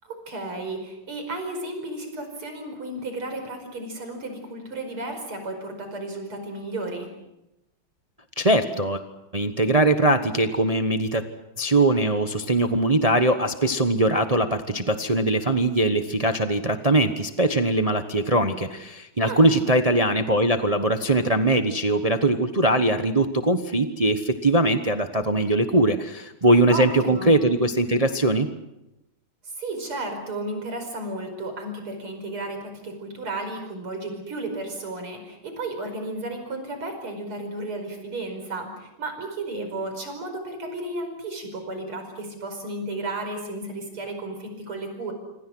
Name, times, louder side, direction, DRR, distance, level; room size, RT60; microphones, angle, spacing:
voice 1, 0.0-7.1 19.2-19.7 26.7-27.3 29.4-45.1, right 2 dB, 85° right, 5 dB, 6.0 m, -33 dB
voice 2, 8.4-9.0 9.3-11.3 11.6-28.5, right 1 dB, 25° right, 8 dB, 0.8 m, -21 dB
27.0 x 25.5 x 6.2 m, 0.90 s
omnidirectional pair, 2.3 m